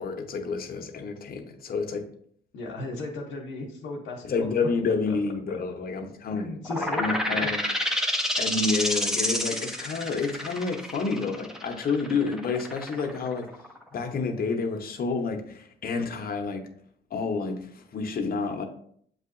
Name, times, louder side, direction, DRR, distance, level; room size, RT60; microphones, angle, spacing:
voice 1, 0.0-2.0 4.3-7.6 8.4-13.5 13.9-16.7 17.1-18.6, left 4 dB, 50° left, 5 dB, 0.8 m, -29 dB
voice 2, 2.5-4.5 5.1-5.2 6.3-7.5, left 2 dB, 85° left, -3 dB, 0.8 m, -36 dB
sound 1, 6.6-14.0, left 1 dB, ahead, 0.7 m, -29 dB
7.5 x 2.7 x 2.5 m, 0.63 s
cardioid pair, 90°, 20 cm